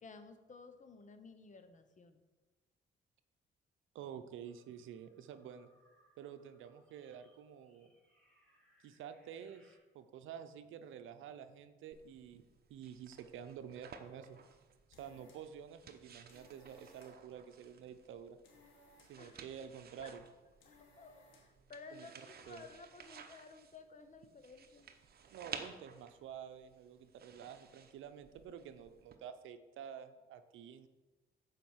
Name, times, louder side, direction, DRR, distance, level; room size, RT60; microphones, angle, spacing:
voice 1, 0.0-2.2 19.2-19.4 20.0-20.1 20.6-24.9, left 4 dB, 40° left, 9 dB, 1.0 m, -55 dB
voice 2, 3.9-5.7 6.2-7.9 8.8-12.4 12.7-14.4 15.0-18.4 19.1-20.2 21.9-22.1 22.5-22.6 25.3-30.9, right 8 dB, 80° right, 10 dB, 0.7 m, -50 dB
sound 1, 4.4-9.8, right 1 dB, 5° left, 2.8 m, -72 dB
sound 2, 11.9-29.2, right 6 dB, 50° right, 1.0 m, -55 dB
sound 3, 14.7-21.7, left 2 dB, 80° left, 1.7 m, -67 dB
7.7 x 5.0 x 7.3 m, 1.2 s
cardioid pair, 90°, 20 cm